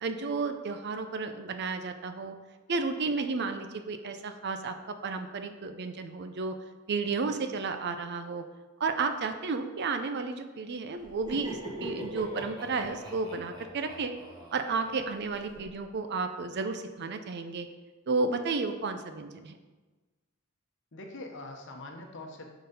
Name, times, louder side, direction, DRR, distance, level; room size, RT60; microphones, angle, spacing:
voice 1, 0.0-2.4 2.7-6.5 6.9-8.4 8.8-14.1 14.5-17.7 18.1-19.5, right 4 dB, 55° right, 8 dB, 0.5 m, -32 dB
Laughter, 11.0-15.7, right 1 dB, 20° right, 1.5 m, -42 dB
voice 2, 20.9-22.5, left 2 dB, 60° left, 3 dB, 0.9 m, -44 dB
6.5 x 4.0 x 5.3 m, 1.2 s
head